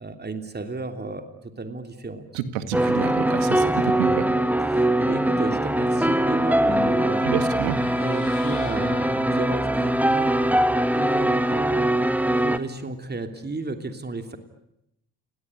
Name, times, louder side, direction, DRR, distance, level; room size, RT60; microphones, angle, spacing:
voice 1, 0.0-2.3 4.7-7.2 8.0-10.3 10.9-14.4, right 3 dB, 25° right, 8 dB, 3.1 m, -33 dB
voice 2, 2.3-4.3 7.2-7.8, right 10 dB, 85° right, 12 dB, 2.0 m, -28 dB
sound 1, 2.7-12.6, right 1 dB, 5° right, 1.9 m, -22 dB
sound 2, 6.0-8.4 8.7-11.0, left 3 dB, 15° left, 4.3 m, -40 dB
sound 3, 7.2-9.8, left 9 dB, 90° left, 3.5 m, -45 dB
29.5 x 19.0 x 9.9 m, 0.83 s
hypercardioid pair, 50°, 39 cm